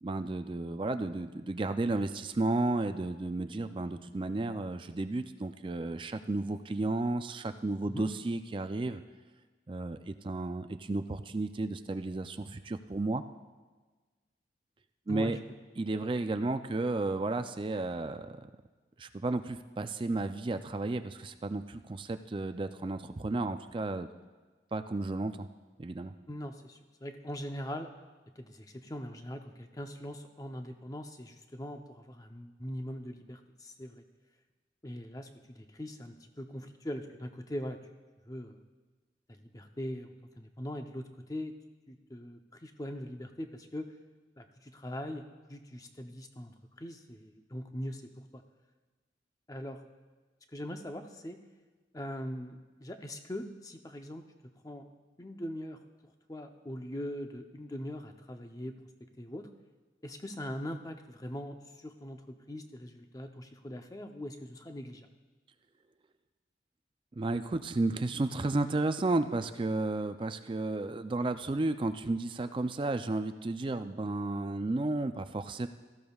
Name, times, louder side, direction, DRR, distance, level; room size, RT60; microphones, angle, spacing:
voice 1, 0.0-9.0 9.7-13.2 15.1-15.4 15.8-18.4 19.0-24.1 24.7-25.5 25.8-26.1 67.2-75.7, right 2 dB, 30° right, 9 dB, 0.4 m, -33 dB
voice 2, 26.3-27.9 28.4-34.0 34.8-37.8 38.3-38.6 39.4-41.5 41.9-43.9 44.4-48.4 49.5-49.8 50.5-51.4 51.9-54.2 54.6-54.9 55.2-55.8 56.3-58.8 59.2-59.5 60.0-65.1, equal, 20° left, 5 dB, 0.7 m, -41 dB
17.0 x 14.5 x 2.4 m, 1.3 s
head